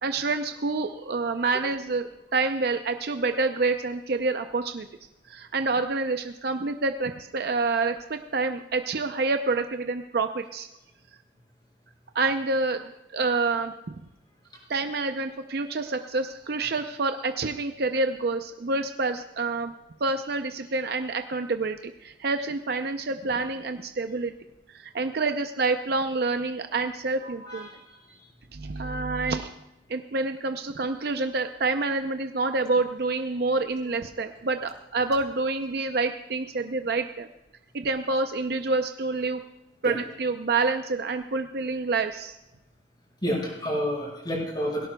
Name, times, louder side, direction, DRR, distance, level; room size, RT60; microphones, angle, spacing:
voice 1, 0.0-4.9 5.3-10.7 12.1-14.0 14.7-19.7 20.0-24.3 24.7-27.7 28.5-29.5 29.9-37.3 37.7-39.4 39.8-42.4, right 3 dB, 60° right, 7 dB, 0.6 m, -27 dB
voice 2, 27.2-28.0 39.8-40.0 43.2-44.9, equal, 25° left, -2 dB, 5.5 m, -30 dB
17.5 x 17.0 x 2.3 m, 0.92 s
head